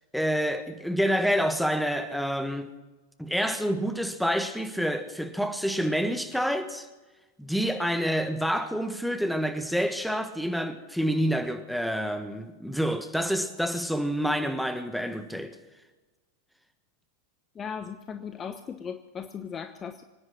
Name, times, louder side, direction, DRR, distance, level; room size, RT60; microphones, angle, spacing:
voice 1, 0.1-2.7 3.2-6.9 7.4-15.6, equal, ahead, 1.3 m, -28 dB
voice 2, 17.5-20.0, left 7 dB, 25° left, 0.9 m, -37 dB
24.5 x 9.8 x 5.9 m
figure-of-eight pair, 90°, 0 cm